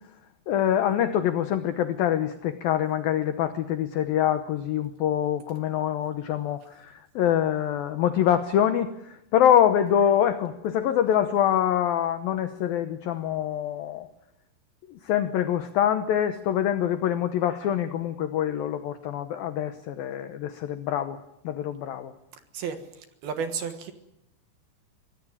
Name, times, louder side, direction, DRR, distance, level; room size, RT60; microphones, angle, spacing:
voice 1, 0.5-14.1 14.9-21.2 21.4-22.1, left 10 dB, 80° left, 10 dB, 2.1 m, -25 dB
voice 2, 22.5-23.9, right 6 dB, 65° right, 8 dB, 3.0 m, -33 dB
24.0 x 17.5 x 9.8 m, 0.84 s
omnidirectional pair, 5.5 m